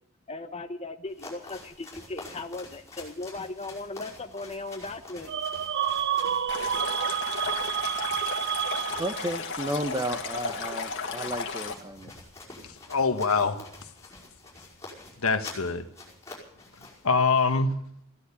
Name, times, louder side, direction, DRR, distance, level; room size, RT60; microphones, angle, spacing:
voice 1, 0.3-5.3, left 2 dB, 30° left, 7 dB, 1.2 m, -37 dB
sound 1, 1.1-17.1, left 2 dB, 15° left, 5.2 m, -47 dB
sound 2, 5.3-9.4, right 9 dB, 50° right, 0.6 m, -29 dB
Stream, 6.5-11.7, left 5 dB, 60° left, 2.0 m, -34 dB
voice 2, 9.0-12.1, right 1 dB, 15° right, 9 dB, 0.9 m, -33 dB
voice 3, 12.6-13.6 15.2-15.8 17.0-17.7, left 4 dB, 75° left, 8 dB, 1.4 m, -24 dB
16.0 x 11.0 x 8.3 m, 0.74 s
head